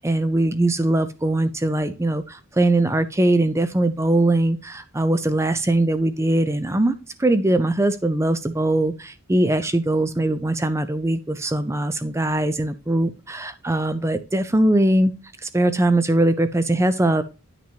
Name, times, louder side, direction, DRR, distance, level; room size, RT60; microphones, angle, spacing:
voice 1, 0.0-15.1 15.4-17.2, right 1 dB, 10° right, 11 dB, 0.4 m, -21 dB
9.9 x 6.0 x 2.8 m, 0.32 s
head